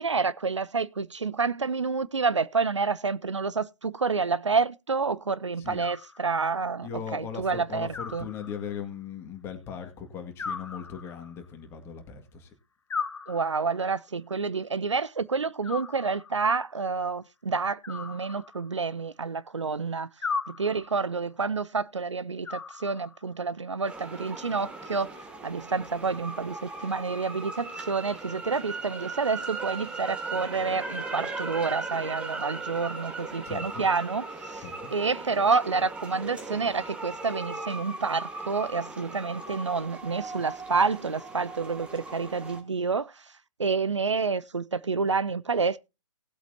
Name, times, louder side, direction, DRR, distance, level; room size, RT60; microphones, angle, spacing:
voice 1, 0.0-8.3 13.3-20.1 20.5-25.1 25.4-34.7 34.9-43.3 43.6-45.8, right 4 dB, 70° right, 0.7 m, -29 dB
Animal, 5.8-6.7 7.9-8.9 10.4-11.5 12.9-13.9 15.6-16.5 17.8-18.9 20.2-21.1 22.4-23.4, left 5 dB, 65° left, 1.2 m, -37 dB
voice 2, 6.8-12.5 33.4-33.9 34.6-34.9, left 7 dB, 15° left, 2.1 m, -39 dB
sound 1, 23.8-42.6, right 3 dB, 5° right, 1.5 m, -38 dB
18.5 x 8.2 x 2.8 m
figure-of-eight pair, 130°, 16 cm